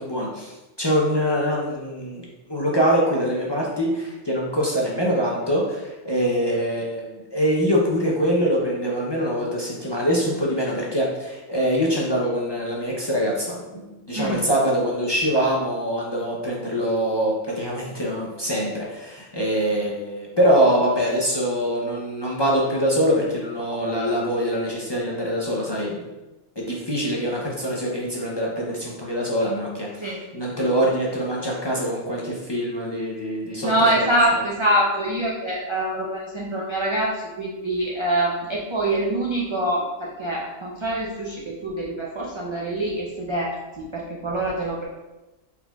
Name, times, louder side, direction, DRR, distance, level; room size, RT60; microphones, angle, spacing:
voice 1, 0.0-26.0 26.6-30.1 30.3-34.0 34.3-34.4, equal, 35° left, -4 dB, 0.4 m, -24 dB
voice 2, 33.6-44.9, right 1 dB, 40° right, -3 dB, 0.4 m, -25 dB
4.4 x 4.1 x 2.2 m, 1.1 s
omnidirectional pair, 1.2 m